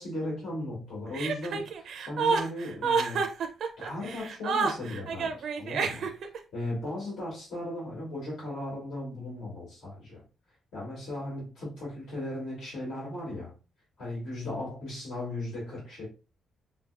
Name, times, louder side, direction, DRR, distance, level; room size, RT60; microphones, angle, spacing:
voice 1, 0.0-3.3 3.8-6.1 6.5-10.2 10.7-13.5 14.0-16.1, left 1 dB, 65° left, -6 dB, 2.3 m, -37 dB
Chuckle chortle, 1.1-6.4, right 5 dB, 65° right, 0.6 m, -29 dB
5.8 x 2.3 x 2.5 m, 0.32 s
cardioid pair, 120°, 0 cm